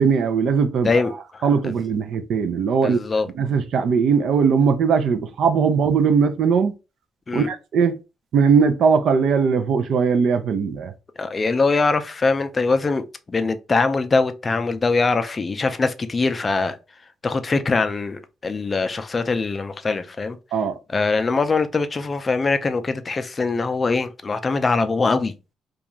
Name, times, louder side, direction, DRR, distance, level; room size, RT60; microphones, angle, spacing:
voice 1, 0.0-1.0 1.4-3.0 3.4-6.7 7.3-8.0 8.3-10.9 20.5-20.8, right 6 dB, 70° right, 0.4 m, -19 dB
voice 2, 0.8-1.7 2.8-3.3 7.3-7.5 11.2-16.8 17.2-20.4 20.9-25.3, left 3 dB, 30° left, 0.4 m, -22 dB
2.5 x 2.3 x 2.9 m
cardioid pair, 90°, 0 cm